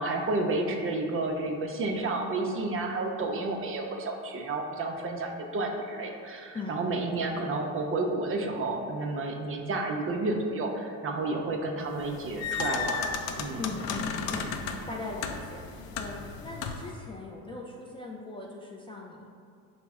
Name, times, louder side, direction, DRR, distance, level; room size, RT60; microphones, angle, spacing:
voice 1, 0.0-13.1 13.4-13.6, right 2 dB, 35° right, 2 dB, 0.5 m, -31 dB
sound 1, 12.0-17.0, left 5 dB, 75° left, 0.5 m, -34 dB
voice 2, 13.6-19.3, left 3 dB, 15° left, -3 dB, 0.3 m, -39 dB
5.6 x 2.1 x 3.5 m, 2.3 s
supercardioid pair, 80°, 38 cm